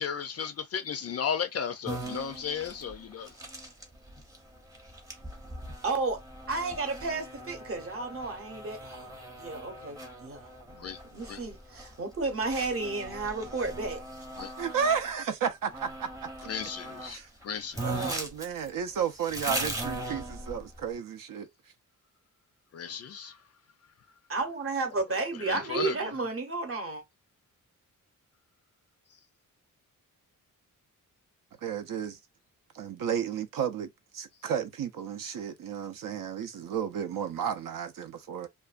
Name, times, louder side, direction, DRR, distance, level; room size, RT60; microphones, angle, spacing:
voice 1, 0.0-3.3 10.8-11.0 11.3-11.4 14.4-14.5 16.5-18.2 22.7-23.4 25.5-26.0, left 7 dB, 45° left, 0.4 m, -34 dB
sound 1, 1.9-15.0 15.7-17.1 17.4-17.5 17.7-20.9, right 1 dB, 10° right, 0.7 m, -40 dB
voice 2, 5.8-6.2 6.5-14.0 24.3-27.0, right 3 dB, 40° right, 0.8 m, -33 dB
voice 3, 14.6-16.1 17.0-17.3 17.8-21.5 31.6-32.2 32.7-33.9 34.1-38.5, right 7 dB, 70° right, 0.5 m, -32 dB
2.5 x 2.2 x 2.4 m
wide cardioid pair, 110°, 34 cm